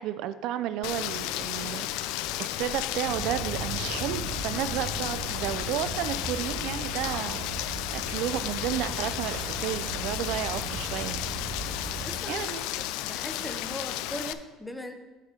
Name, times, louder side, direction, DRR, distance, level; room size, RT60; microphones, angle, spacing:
voice 1, 0.0-11.2 12.3-12.6, right 11 dB, 60° right, 13 dB, 0.4 m, -32 dB
Rain, 0.8-14.3, left 14 dB, 75° left, 0.3 m, -33 dB
sound 1, 2.0-13.1, left 3 dB, 40° left, 0.7 m, -55 dB
sound 2, 3.0-12.2, right 3 dB, 85° right, 1.1 m, -37 dB
voice 2, 12.0-14.9, left 1 dB, 5° left, 6 dB, 0.6 m, -39 dB
9.0 x 6.4 x 3.8 m, 1.2 s
cardioid pair, 160°, 0 cm